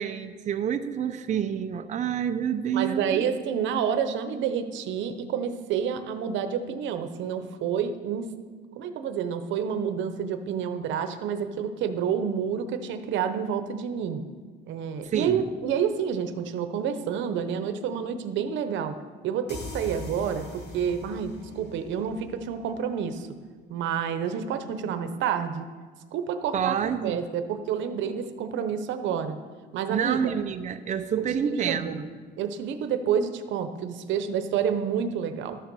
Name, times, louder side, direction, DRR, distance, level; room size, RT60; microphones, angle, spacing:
voice 1, 0.0-3.3 15.0-15.5 26.5-27.2 29.9-32.1, right 8 dB, 40° right, 7 dB, 0.6 m, -28 dB
voice 2, 2.7-8.3 8.8-14.2 14.7-18.9 19.2-23.3 23.7-25.7 26.1-29.4 29.7-30.3 31.4-32.0 32.4-35.6, right 7 dB, 85° right, 9 dB, 0.9 m, -29 dB
sound 1, 19.5-23.0, left 2 dB, 70° left, 2.4 m, -42 dB
12.5 x 6.8 x 6.2 m, 1.5 s
cardioid pair, 120°, 19 cm